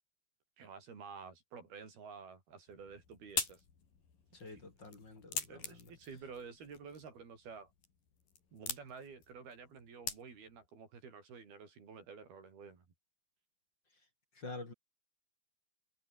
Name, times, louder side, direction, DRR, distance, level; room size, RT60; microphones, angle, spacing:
voice 1, 0.6-3.6 4.5-4.6 5.3-7.7 8.5-12.8, right 5 dB, 80° right, 7.2 m, -51 dB
sound 1, 2.7-10.7, left 6 dB, 65° left, 6.0 m, -45 dB
voice 2, 4.3-5.9 14.3-14.7, left 2 dB, 30° left, 4.2 m, -48 dB
omnidirectional pair, 4.3 m